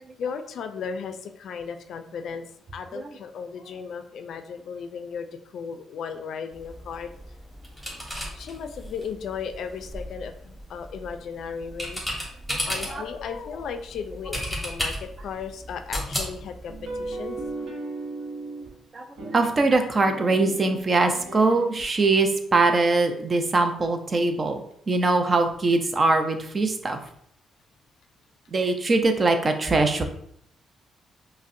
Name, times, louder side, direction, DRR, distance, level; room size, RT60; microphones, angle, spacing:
voice 1, 0.2-2.4 2.7-7.1 8.3-12.0 12.7-17.4, left 6 dB, 70° left, 8 dB, 0.3 m, -35 dB
sound 1, 6.5-17.5, equal, ahead, 1.4 m, -35 dB
sound 2, 16.7-18.7 19.2-21.8, right 3 dB, 80° right, 0.7 m, -36 dB
voice 2, 18.9-24.6 24.9-27.0 28.5-30.0, right 3 dB, 35° right, 6 dB, 0.5 m, -22 dB
5.0 x 2.1 x 2.6 m, 0.70 s
cardioid pair, 95°, 0 cm